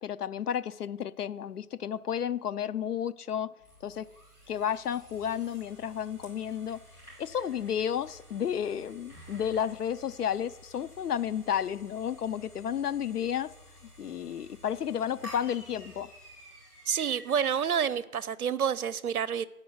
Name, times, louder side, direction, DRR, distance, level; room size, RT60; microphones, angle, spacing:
voice 1, 0.0-3.5 3.8-4.1 4.5-6.8 7.2-13.5 14.0-16.1, left 9 dB, 85° left, 0.6 m, -32 dB
sound 1, 3.6-18.0, equal, 10° left, 4.4 m, -52 dB
voice 2, 16.9-19.5, right 8 dB, 70° right, 0.6 m, -28 dB
8.9 x 5.3 x 7.7 m
figure-of-eight pair, 170°, 45 cm